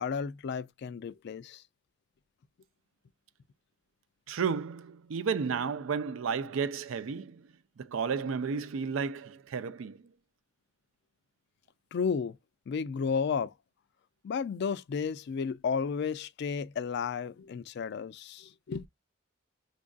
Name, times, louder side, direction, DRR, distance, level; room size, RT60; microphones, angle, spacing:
voice 1, 0.0-1.6 11.9-12.4 12.7-13.5 14.2-18.9, left 6 dB, 60° left, 0.3 m, -33 dB
voice 2, 4.3-7.5 7.8-10.0, right 6 dB, 85° right, 0.4 m, -32 dB
5.2 x 2.5 x 2.3 m
head